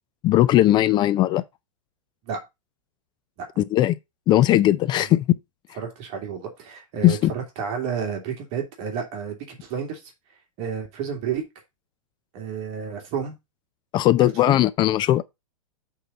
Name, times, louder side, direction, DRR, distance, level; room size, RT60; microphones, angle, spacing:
voice 1, 0.2-1.4 3.6-4.0 4.3-5.3 7.0-7.3 13.9-15.2, left 14 dB, 25° left, 0.4 m, -18 dB
voice 2, 5.7-10.1 10.6-11.4 12.3-13.4 14.2-14.6, right 7 dB, 40° right, 2.5 m, -31 dB
8.4 x 3.9 x 5.6 m
hypercardioid pair, 125°, 18 cm